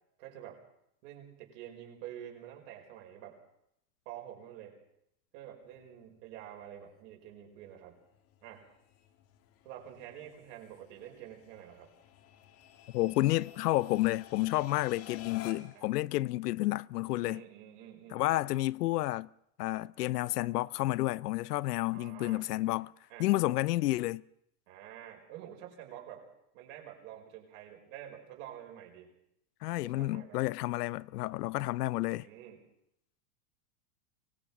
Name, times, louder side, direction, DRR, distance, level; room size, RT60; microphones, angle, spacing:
voice 1, 0.2-0.6 1.0-3.4 4.1-4.7 5.3-8.0 8.4-8.7 9.6-11.9 15.7-15.8 17.2-18.2 21.9-22.5 23.1-23.4 24.7-26.3 26.5-29.1 29.8-30.4 32.1-32.6, right 11 dB, 45° right, 5.4 m, -48 dB
sound 1, 5.6-15.9, left 11 dB, 30° left, 1.6 m, -53 dB
voice 2, 12.9-17.4 18.1-19.3 19.6-22.9 23.2-24.2 29.6-32.3, left 18 dB, 85° left, 0.7 m, -30 dB
24.0 x 19.5 x 6.1 m
supercardioid pair, 170°, 46 cm